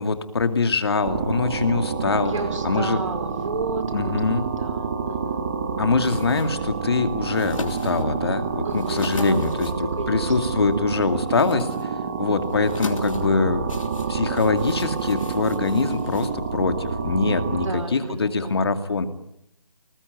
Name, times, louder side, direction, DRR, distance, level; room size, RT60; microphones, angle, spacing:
voice 1, 0.0-2.3 2.6-3.0 3.9-4.4 5.8-13.6 14.1-19.1, left 4 dB, 40° left, 8 dB, 2.2 m, -23 dB
sound 1, 1.0-17.7, right 5 dB, 20° right, 1.9 m, -28 dB
voice 2, 2.3-5.5 8.6-10.3 17.6-18.6, right 3 dB, 55° right, 9 dB, 4.8 m, -33 dB
sound 2, 5.9-16.9, left 3 dB, 55° left, 3.2 m, -41 dB
29.0 x 19.5 x 9.4 m, 0.81 s
figure-of-eight pair, 170°, 19 cm